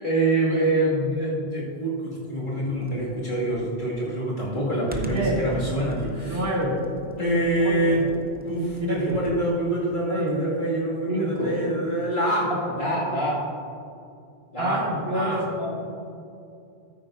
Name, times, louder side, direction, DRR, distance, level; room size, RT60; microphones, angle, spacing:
voice 1, 0.0-6.5 7.2-8.1 8.4-12.5 12.8-13.4 14.5-14.8 15.1-15.4, right 1 dB, 50° left, -7 dB, 2.5 m, -25 dB
Computer keyboard, 2.7-9.5, right 2 dB, 10° right, 0.5 m, -40 dB
voice 2, 5.0-5.4 6.3-6.9 7.6-8.0 8.9-9.2 10.1-10.4 11.1-11.5 14.6-15.7, equal, 70° right, -2 dB, 1.8 m, -27 dB
13.0 x 9.3 x 2.6 m, 2.5 s
omnidirectional pair, 1.1 m